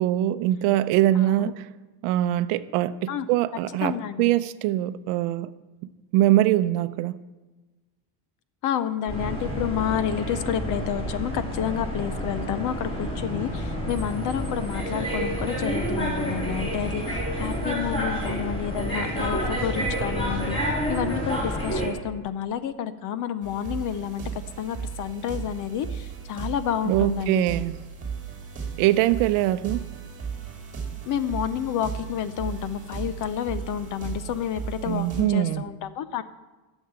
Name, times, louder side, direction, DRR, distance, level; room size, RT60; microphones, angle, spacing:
voice 1, 0.0-1.5 2.0-5.5 6.1-7.1 26.9-27.8 28.8-29.8 34.9-35.6, right 14 dB, 70° right, 11 dB, 0.7 m, -23 dB
voice 2, 1.1-1.5 3.1-3.3 3.8-4.3 8.6-24.3 24.6-27.4 31.1-36.2, left 9 dB, 40° left, 13 dB, 0.5 m, -30 dB
sound 1, 9.1-21.9, equal, 10° left, 3.4 m, -29 dB
sound 2, 23.4-35.2, right 6 dB, 15° right, 2.6 m, -36 dB
12.5 x 7.2 x 8.5 m, 1.2 s
cardioid pair, 170°, 49 cm